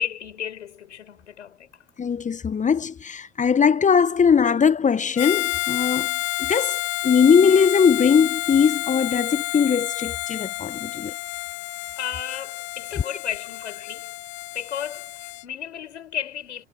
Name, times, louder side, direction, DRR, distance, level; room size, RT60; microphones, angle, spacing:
voice 1, 0.0-1.7 6.0-6.1 12.0-14.1 14.5-16.6, left 9 dB, 80° left, 7.3 m, -33 dB
voice 2, 2.0-6.1 6.4-11.1, left 6 dB, 20° left, 1.1 m, -20 dB
Harmonica, 5.2-15.4, left 20 dB, 50° left, 1.2 m, -30 dB
figure-of-eight pair, 75°, 35 cm